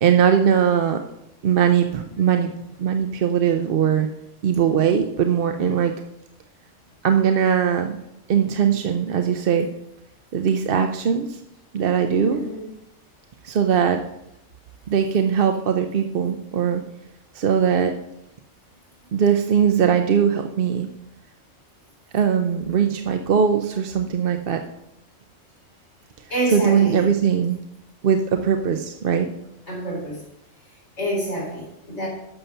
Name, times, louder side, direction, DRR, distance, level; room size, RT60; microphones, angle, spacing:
voice 1, 0.0-1.0 1.4-2.5 2.8-4.1 4.4-5.9 7.0-8.0 8.3-9.7 10.3-11.4 11.7-12.5 13.4-14.0 14.9-16.8 17.3-18.0 19.1-20.9 22.1-24.6 26.5-27.6 28.0-29.3, right 8 dB, 55° right, 6 dB, 0.8 m, -20 dB
voice 2, 12.3-12.7 26.3-27.0 29.7-30.2 31.0-32.1, right 1 dB, 60° left, -4 dB, 4.1 m, -27 dB
11.0 x 6.8 x 5.6 m, 0.85 s
omnidirectional pair, 1.3 m